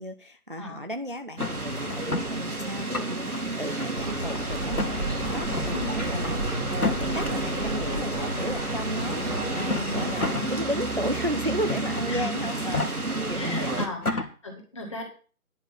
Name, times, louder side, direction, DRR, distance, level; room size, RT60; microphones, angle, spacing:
voice 1, 0.0-6.4 6.8-13.7, equal, 35° right, 8 dB, 0.6 m, -34 dB
sound 1, 1.4-2.3 2.8-3.4 3.8-4.4 4.7-4.9 5.4-5.7 6.7-7.3 8.3-8.4 9.5-10.5 10.9-11.0 11.7-12.0 12.6-12.9 13.4-13.5 13.8-14.3, left 2 dB, 80° left, 1.7 m, -30 dB
sound 2, 1.4-13.9, right 2 dB, 80° right, 2.6 m, -31 dB
sound 3, 3.9-10.3, right 1 dB, 5° right, 1.4 m, -33 dB
voice 2, 5.7-6.3 8.3-8.7 9.0-9.3 9.8-10.2 12.1-12.6 13.3-15.0, left 2 dB, 20° left, 1 dB, 1.9 m, -38 dB
10.0 x 5.1 x 7.9 m, 0.39 s
figure-of-eight pair, 160°, 44 cm